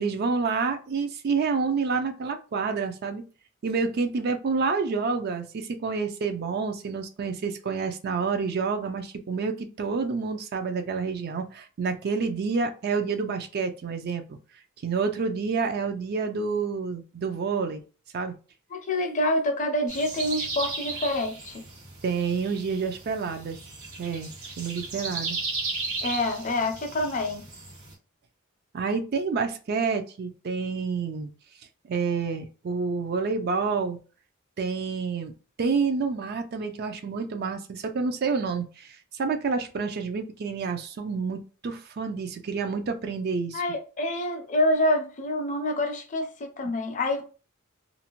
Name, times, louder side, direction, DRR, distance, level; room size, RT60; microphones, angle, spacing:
voice 1, 0.0-3.2 3.6-14.4 14.8-17.8 18.1-18.3 22.0-23.6 24.0-24.3 24.6-25.4 28.7-31.3 31.9-34.0 34.6-35.3 35.6-43.6, right 5 dB, 45° right, 0.4 m, -28 dB
voice 2, 18.7-21.6 26.0-27.4 43.5-47.2, left 1 dB, 35° left, 0.5 m, -27 dB
sound 1, 19.9-27.9, right 3 dB, 90° right, 1.2 m, -35 dB
2.5 x 2.0 x 2.9 m
head